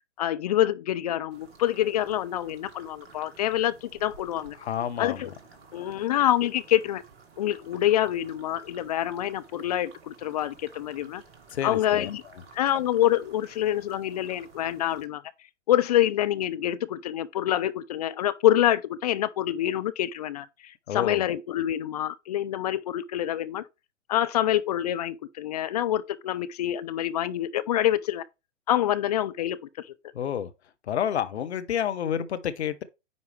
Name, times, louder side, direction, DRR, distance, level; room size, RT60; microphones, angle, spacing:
voice 1, 0.2-4.6 5.0-5.3 5.7-7.0 7.4-11.2 11.6-12.2 12.5-15.2 15.7-23.7 24.1-28.2 28.7-29.9, left 12 dB, 35° left, 0.5 m, -26 dB
sound 1, 1.3-15.1, right 4 dB, 50° right, 2.1 m, -53 dB
voice 2, 4.6-5.3 11.5-12.1 20.9-21.2 30.1-30.5 30.8-32.8, left 9 dB, 60° left, 0.9 m, -29 dB
9.6 x 4.7 x 3.2 m
figure-of-eight pair, 115°, 37 cm